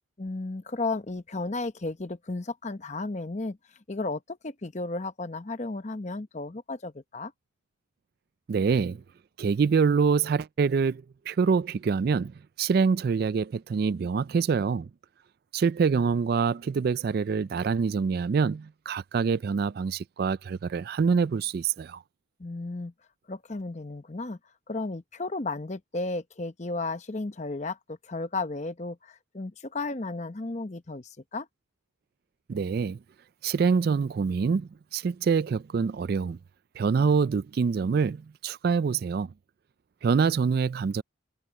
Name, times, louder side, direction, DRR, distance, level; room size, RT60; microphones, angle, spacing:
voice 1, 0.2-3.6 3.9-7.3 22.4-22.9 23.3-24.4 24.7-31.5, left 3 dB, 35° left, 0.8 m, -34 dB
voice 2, 8.5-9.0 9.4-12.3 12.6-14.9 15.5-22.0 32.5-33.0 33.4-36.4 36.8-39.3 40.0-41.0, right 5 dB, 50° right, 0.3 m, -25 dB
head